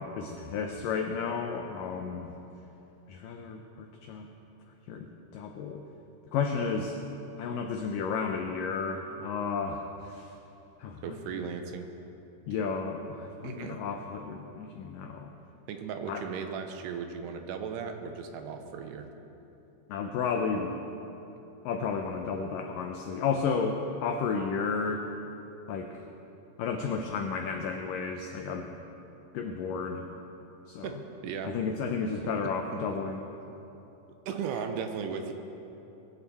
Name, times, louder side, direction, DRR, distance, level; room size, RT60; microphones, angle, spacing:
voice 1, 0.0-2.3 3.1-4.3 4.9-5.8 6.3-7.0 7.4-10.3 10.8-11.5 12.5-15.3 16.1-16.2 19.9-20.8 21.6-25.1 25.7-26.0 26.6-28.7 29.3-30.1 30.7-30.9 31.4-33.3, left 5 dB, 90° left, 4 dB, 1.9 m, -32 dB
voice 2, 11.0-11.9 13.4-13.8 15.7-19.1 30.8-31.0 31.2-31.5 32.7-32.8 34.3-35.3, right 6 dB, 85° right, 6 dB, 2.9 m, -36 dB
21.5 x 10.5 x 4.2 m, 3.0 s
omnidirectional pair, 4.8 m